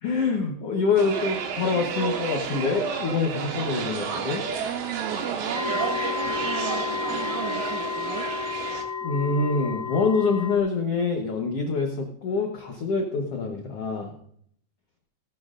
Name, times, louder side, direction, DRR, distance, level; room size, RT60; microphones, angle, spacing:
voice 1, 0.0-4.4 9.0-14.1, left 4 dB, 90° left, 2 dB, 1.3 m, -25 dB
sound 1, 1.0-8.8, right 6 dB, 70° right, 3.0 m, -31 dB
voice 2, 4.3-8.3, right 9 dB, 90° right, 5 dB, 1.6 m, -36 dB
sound 2, 5.5-10.6, left 6 dB, 15° left, 1.2 m, -31 dB
17.5 x 13.0 x 2.5 m, 0.66 s
omnidirectional pair, 4.4 m